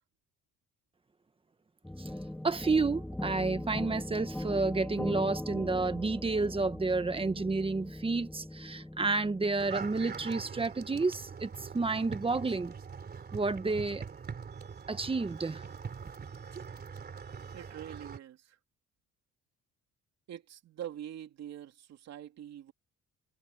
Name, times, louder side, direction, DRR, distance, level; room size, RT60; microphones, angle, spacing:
sound 1, 1.8-10.3, left 1 dB, 5° left, 1.6 m, -40 dB
voice 1, 2.4-12.7 13.3-14.0 14.9-15.6, right 3 dB, 20° right, 1.4 m, -30 dB
sound 2, 9.6-18.2, right 6 dB, 35° right, 3.5 m, -43 dB
voice 2, 17.5-18.6 20.3-22.7, right 11 dB, 65° right, 3.0 m, -44 dB
cardioid pair, 125°, 29 cm